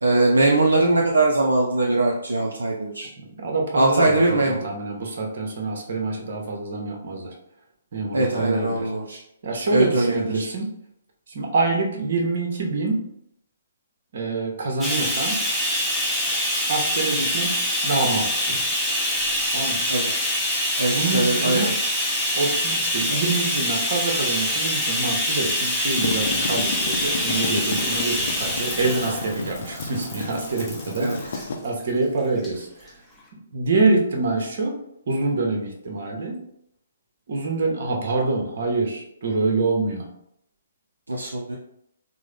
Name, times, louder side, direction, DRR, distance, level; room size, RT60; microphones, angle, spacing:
voice 1, 0.0-3.1 3.7-4.7 8.1-9.2 9.7-10.5 19.9-20.1 20.8-21.7 23.1-23.2 31.0-31.2 41.1-41.6, right 2 dB, 75° right, -1 dB, 0.5 m, -21 dB
voice 2, 3.4-7.3 7.9-8.9 9.4-10.7 11.3-13.0 14.1-15.4 16.7-18.6 19.5-19.9 20.9-21.7 22.3-32.9 33.5-34.7 35.1-36.4 37.3-40.1, right 3 dB, 55° right, 1 dB, 0.9 m, -26 dB
Bathtub (filling or washing), 14.8-31.5 32.4-32.5 32.9-33.0, left 1 dB, 5° left, 0.6 m, -25 dB
sound 1, 25.8-31.6, left 3 dB, 55° left, 0.5 m, -32 dB
3.6 x 2.1 x 3.3 m, 0.74 s
figure-of-eight pair, 130°, 0 cm